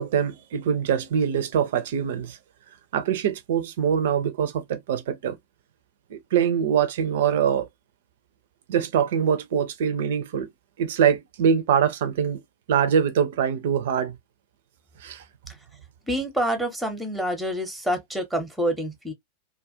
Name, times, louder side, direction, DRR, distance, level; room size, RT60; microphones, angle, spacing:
voice 1, 0.0-2.4 2.9-5.4 6.1-7.7 8.7-10.5 10.8-12.4 12.7-14.2 15.0-15.2, right 8 dB, 55° right, 0.4 m, -23 dB
voice 2, 16.1-19.1, right 1 dB, ahead, 0.7 m, -27 dB
2.3 x 2.1 x 2.6 m
figure-of-eight pair, 90°, 0 cm